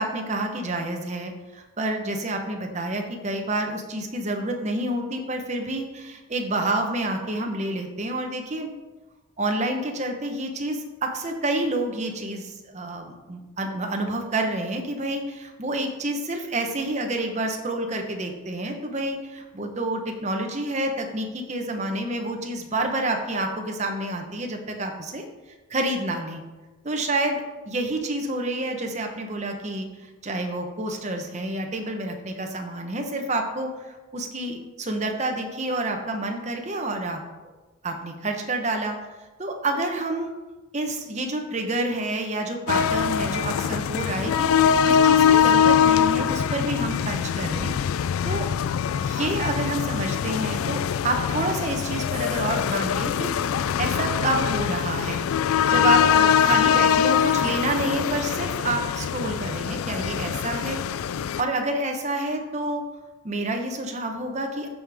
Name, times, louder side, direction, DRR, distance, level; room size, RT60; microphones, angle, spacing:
voice 1, 0.0-8.7 9.4-25.2 25.7-26.4 26.8-27.4 27.7-37.2 37.8-39.0 39.4-40.3 40.7-48.5 49.0-60.8 61.4-62.8 63.2-64.7, right 2 dB, 35° right, 3 dB, 0.9 m, -28 dB
sound 1, 42.7-61.4, left 8 dB, 75° left, 0.3 m, -23 dB
13.5 x 5.0 x 3.5 m, 1.2 s
head